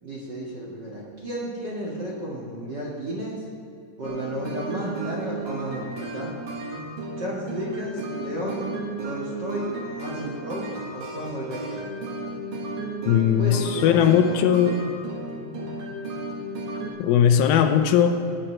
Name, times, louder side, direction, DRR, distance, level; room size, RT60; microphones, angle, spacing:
voice 1, 0.0-3.4 4.0-6.3 7.2-8.7 9.0-11.8 13.3-14.5, right 1 dB, 40° right, -5 dB, 1.7 m, -33 dB
sound 1, 4.0-16.9, right 2 dB, 60° right, 3.2 m, -34 dB
voice 2, 13.1-14.8 17.0-18.2, left 9 dB, 85° left, 7 dB, 2.7 m, -19 dB
19.5 x 9.3 x 4.4 m, 2.6 s
omnidirectional pair, 4.1 m